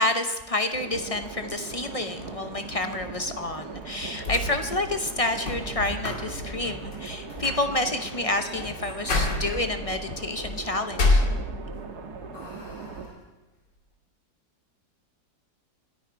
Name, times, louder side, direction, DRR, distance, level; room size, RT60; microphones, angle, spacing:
voice 1, 0.0-11.2, left 2 dB, 40° left, 8 dB, 0.4 m, -29 dB
sound 1, 0.7-13.1, right 4 dB, 65° right, 1.9 m, -39 dB
sound 2, 4.0-11.9 12.3-13.1, left 2 dB, 75° left, 3.0 m, -30 dB
27.5 x 10.0 x 4.6 m, 1.0 s
omnidirectional pair, 1.9 m